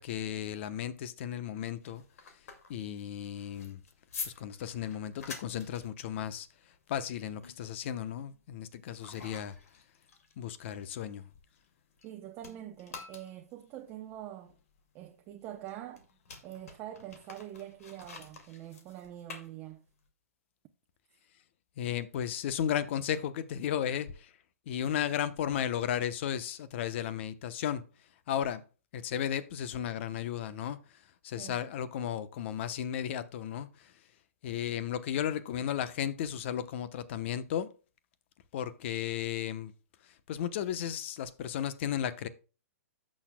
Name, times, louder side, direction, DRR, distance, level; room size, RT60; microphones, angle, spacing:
voice 1, 0.0-2.0 2.7-3.8 4.4-6.5 6.9-9.5 10.4-11.2 21.8-24.1 24.7-27.8 28.3-28.6 28.9-30.8 31.2-33.7 34.4-37.7 38.5-39.7 40.3-42.3, left 9 dB, 50° left, 0.9 m, -34 dB
sound 1, 1.6-12.1 12.4-20.1, left 5 dB, 70° left, 2.2 m, -49 dB
voice 2, 12.0-14.6 14.9-16.1 16.4-19.8 31.4-31.6, right 12 dB, 30° right, 0.7 m, -45 dB
14.5 x 6.3 x 2.2 m
hypercardioid pair, 140°, 8 cm